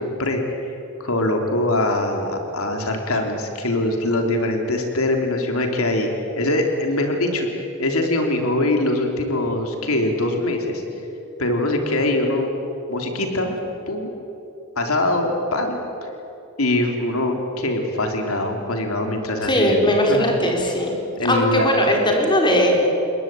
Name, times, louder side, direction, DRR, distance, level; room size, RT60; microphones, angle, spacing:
voice 1, 0.0-6.1 6.4-10.8 11.4-12.5 12.9-13.6 13.9-14.1 14.8-16.1 16.6-20.3 21.2-21.7, left 1 dB, 85° left, 3 dB, 3.6 m, -23 dB
voice 2, 19.4-20.9 21.2-22.8, equal, 20° left, 1 dB, 4.5 m, -19 dB
28.0 x 21.5 x 9.2 m, 3.0 s
head